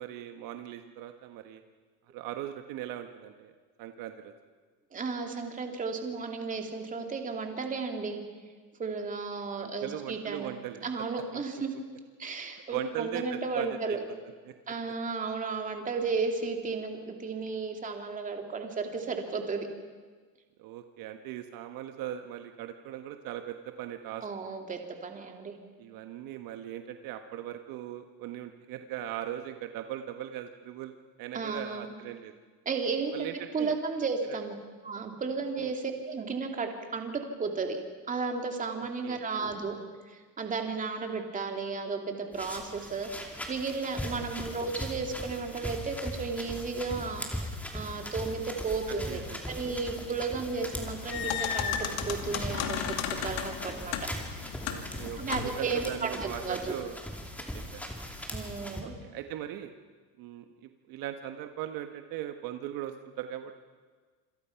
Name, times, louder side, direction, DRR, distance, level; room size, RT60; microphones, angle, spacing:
voice 1, 0.0-1.6 2.1-3.5 3.8-4.3 9.6-10.8 11.3-11.4 12.7-14.0 20.6-24.2 25.8-32.3 33.1-33.7 34.3-34.4 35.6-35.7 38.7-39.2 44.1-44.2 48.9-49.4 54.6-57.0 57.5-57.8 58.8-59.7 60.2-63.6, right 11 dB, 60° right, 6 dB, 1.4 m, -39 dB
voice 2, 4.9-8.2 8.8-10.5 10.8-11.7 12.2-14.0 14.7-19.7 24.2-25.5 31.3-31.9 32.7-34.6 34.8-37.1 37.4-37.8 38.1-39.8 40.1-49.2 49.5-51.8 52.1-54.0 55.2-56.8 58.3-58.9, right 4 dB, 20° right, 3 dB, 2.6 m, -34 dB
sound 1, 42.3-58.8, left 1 dB, 5° left, 2.8 m, -39 dB
sound 2, 50.7-55.7, left 9 dB, 75° left, 2.5 m, -35 dB
27.0 x 26.5 x 5.8 m, 1.5 s
cardioid pair, 160°, 39 cm